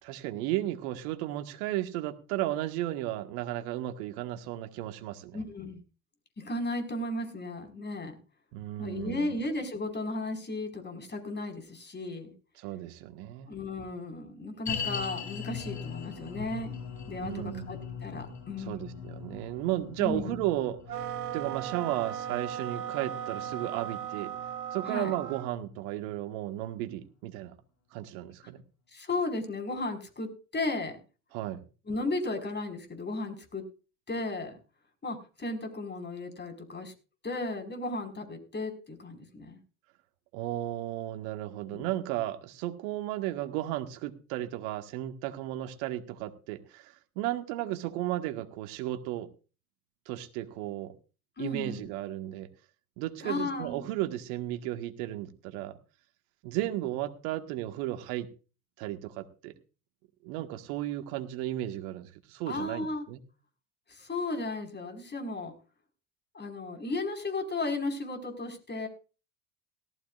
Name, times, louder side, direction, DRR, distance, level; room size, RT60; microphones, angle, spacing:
voice 1, 0.0-5.4 8.5-9.4 12.6-13.6 17.2-17.7 18.6-21.0 21.3-24.3 24.7-27.5 27.9-28.6 31.3-31.6 40.3-49.3 50.1-50.9 51.4-52.5 53.0-55.8 56.4-58.3 58.8-59.5 60.2-63.2, right 14 dB, 65° right, 7 dB, 1.9 m, -34 dB
voice 2, 5.3-5.8 6.4-8.2 8.8-12.3 13.5-16.8 17.1-19.0 20.0-20.4 24.9-25.1 28.9-31.0 31.9-33.6 34.1-34.6 35.0-36.9 37.2-39.6 41.7-41.9 51.4-51.9 53.2-53.8 62.5-63.1 63.9-65.5 66.3-68.9, left 2 dB, 20° left, 5 dB, 5.3 m, -35 dB
sound 1, 14.7-25.9 26.2-26.3 26.9-27.0, left 6 dB, 35° left, 7.7 m, -41 dB
sound 2, 20.9-25.5, right 10 dB, 80° right, 1.2 m, -37 dB
18.0 x 14.5 x 2.6 m, 0.35 s
hypercardioid pair, 75°, 47 cm